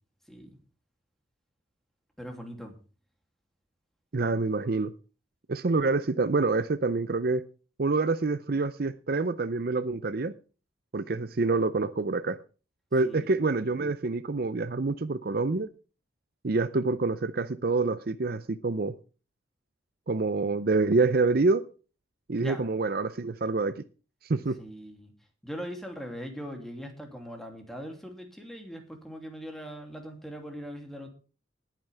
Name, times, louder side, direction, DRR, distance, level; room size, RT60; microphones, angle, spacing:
voice 1, 0.3-0.6 2.2-2.7 13.0-13.3 22.4-22.7 24.6-25.1 25.4-31.1, equal, ahead, 2.8 m, -40 dB
voice 2, 4.1-4.9 5.5-7.4 7.8-10.3 10.9-12.4 12.9-15.7 16.4-18.9 20.1-21.6 22.3-23.8 24.2-24.6, right 3 dB, 50° right, 0.6 m, -27 dB
19.5 x 9.1 x 3.4 m
head